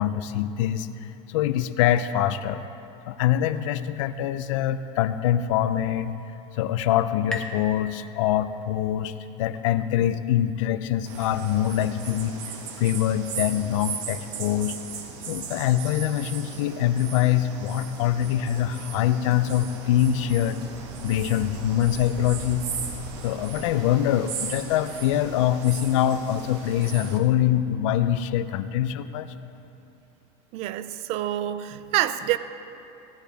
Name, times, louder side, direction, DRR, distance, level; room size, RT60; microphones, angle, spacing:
voice 1, 0.0-2.6 3.1-6.1 6.5-9.1 9.4-12.3 12.8-14.7 15.3-20.6 21.0-22.6 23.2-29.3, left 11 dB, 75° left, 13 dB, 0.6 m, -24 dB
sound 1, 5.9-9.2, left 1 dB, 5° left, 0.8 m, -41 dB
sound 2, 11.1-27.2, right 5 dB, 65° right, 1.5 m, -37 dB
voice 2, 30.5-32.4, right 13 dB, 40° right, 12 dB, 0.4 m, -27 dB
17.0 x 11.5 x 3.5 m, 2.8 s
cardioid pair, 170°, 16 cm